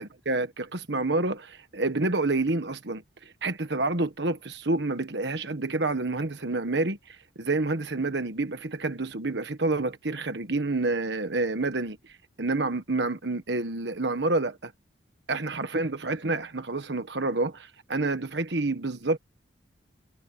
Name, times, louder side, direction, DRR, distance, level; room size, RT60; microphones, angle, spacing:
voice 1, 0.0-3.0 3.4-12.0 12.4-14.7 15.3-19.2, right 2 dB, 70° right, 1.3 m, -28 dB
head